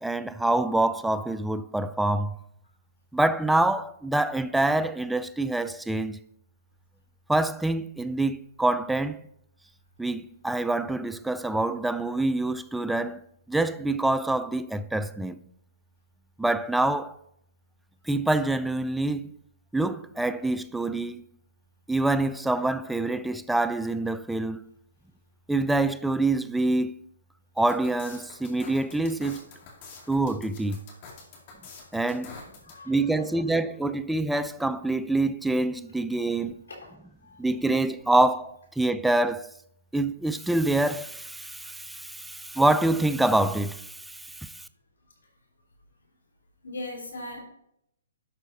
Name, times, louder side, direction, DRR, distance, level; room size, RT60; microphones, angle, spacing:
voice 1, 0.0-2.4 3.1-6.2 7.3-9.2 10.0-13.2 13.5-15.4 16.4-17.1 18.1-19.3 19.7-21.2 21.9-24.6 25.5-26.9 27.6-29.4 30.1-30.8 31.9-32.3 32.9-36.6 37.4-39.5 39.9-44.5, right 2 dB, 5° right, 0.3 m, -26 dB
sound 1, 27.6-32.8, left 4 dB, 40° left, 2.3 m, -46 dB
voice 2, 32.1-33.5 36.7-36.9 37.2-37.5 46.6-47.4, left 2 dB, 80° left, 3.5 m, -41 dB
11.5 x 4.5 x 4.1 m
hypercardioid pair, 145°, 0 cm